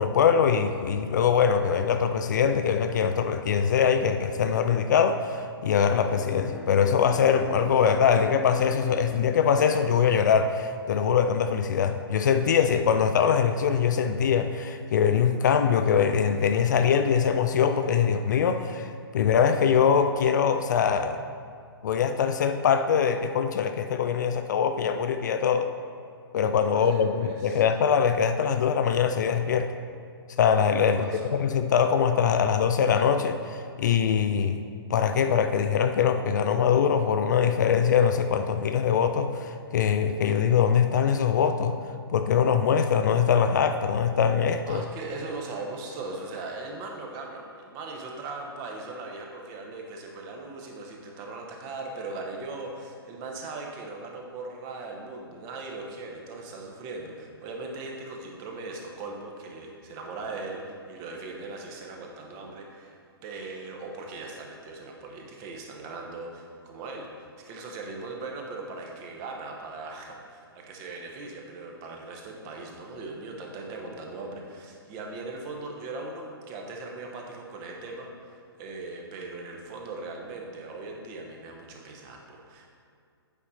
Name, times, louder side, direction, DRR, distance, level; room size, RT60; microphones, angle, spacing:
voice 1, 0.0-21.2 21.8-25.7 26.3-29.7 30.4-34.6 34.9-41.8 42.1-44.8, left 7 dB, 45° left, 8 dB, 0.4 m, -23 dB
Bowed string instrument, 5.9-11.0, left 2 dB, 5° right, 0.6 m, -42 dB
voice 2, 26.7-27.6 30.9-31.4 44.7-63.0 63.2-82.7, right 3 dB, 25° right, 1 dB, 1.1 m, -39 dB
8.4 x 5.4 x 4.2 m, 2.3 s
figure-of-eight pair, 125°, 13 cm